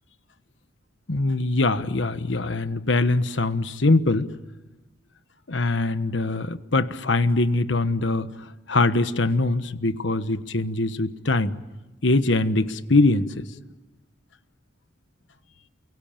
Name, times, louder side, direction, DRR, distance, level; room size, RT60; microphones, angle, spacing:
voice 1, 1.1-4.3 5.5-8.3 8.7-11.6 12.0-13.3, left 2 dB, 65° left, 12 dB, 1.2 m, -22 dB
29.5 x 22.5 x 8.9 m, 1.1 s
head